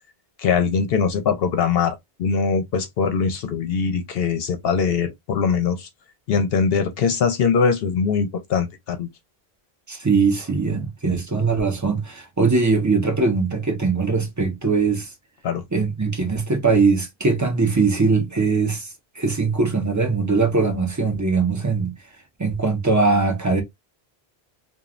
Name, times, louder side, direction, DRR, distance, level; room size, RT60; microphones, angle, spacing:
voice 1, 0.4-5.9 6.3-9.1 15.4-15.6, left 6 dB, 70° left, 0.8 m, -22 dB
voice 2, 9.9-15.1 15.7-18.9 19.2-21.9 22.4-23.6, right 4 dB, 20° right, 0.6 m, -21 dB
3.0 x 2.3 x 2.4 m
omnidirectional pair, 1.1 m